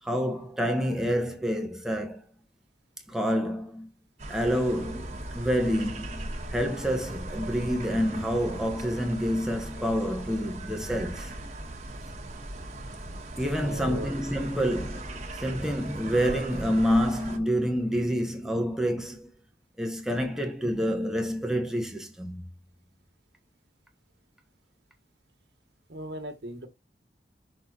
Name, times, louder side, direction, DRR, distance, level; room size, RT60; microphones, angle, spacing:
voice 1, 0.0-2.2 3.1-3.9 4.3-11.3 13.4-19.3 19.8-22.4, equal, 5° right, 1.2 m, -28 dB
sound 1, 4.2-17.4, right 1 dB, 40° right, 1.9 m, -39 dB
voice 2, 13.6-14.1 25.9-26.7, right 1 dB, 80° right, 1.7 m, -37 dB
6.4 x 4.7 x 4.1 m
head